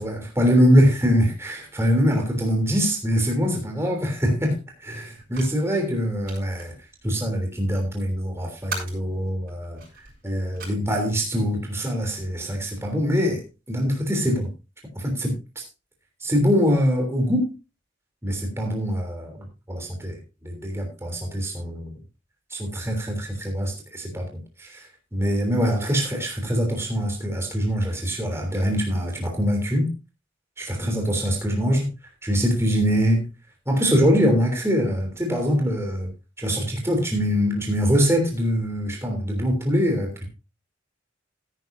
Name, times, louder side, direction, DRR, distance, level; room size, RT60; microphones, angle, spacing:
voice 1, 0.0-6.7 7.0-9.8 10.2-13.4 13.7-14.5 14.9-15.6 16.2-17.5 18.2-21.9 22.5-29.9 30.6-31.9 32.2-33.2 33.7-36.1 36.4-40.3, equal, 15° right, 2 dB, 3.2 m, -23 dB
sound 1, 5.2-10.7, right 4 dB, 50° right, 7.0 m, -42 dB
16.5 x 9.9 x 2.7 m, 0.28 s
head